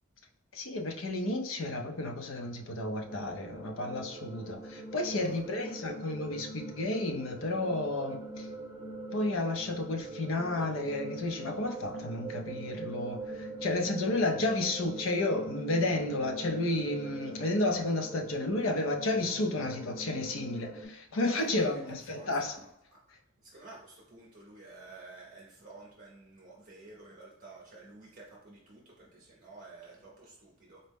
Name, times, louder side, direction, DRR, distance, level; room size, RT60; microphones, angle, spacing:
voice 1, 0.5-8.5 9.1-22.6, left 2 dB, 65° left, 4 dB, 0.5 m, -32 dB
sound 1, 3.0-20.9, right 2 dB, 15° right, 0.9 m, -43 dB
voice 2, 5.2-6.0 21.4-21.8 22.1-22.5 23.5-30.8, right 3 dB, 40° right, -4 dB, 0.6 m, -51 dB
3.9 x 2.1 x 3.4 m, 0.77 s
head